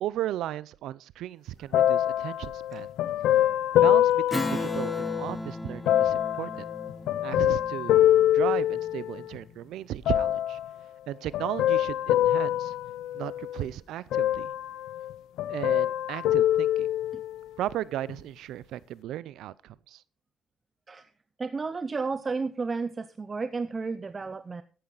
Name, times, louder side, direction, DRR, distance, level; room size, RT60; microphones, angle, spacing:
voice 1, 0.0-2.9 3.8-6.7 7.2-10.6 11.1-12.7 13.1-14.5 15.5-16.9 17.6-20.0, right 13 dB, 85° right, 20 dB, 0.5 m, -35 dB
sound 1, 1.7-5.3 5.9-9.4 10.1-10.7 11.3-13.7 14.1-15.1 15.4-17.4 18.1-18.2, left 12 dB, 85° left, 0.5 m, -25 dB
Strum, 4.3-9.2, left 1 dB, 10° left, 1.2 m, -36 dB
voice 2, 21.4-24.6, right 4 dB, 30° right, 12 dB, 0.7 m, -32 dB
14.0 x 11.5 x 4.0 m, 0.37 s
cardioid pair, 90°, 0 cm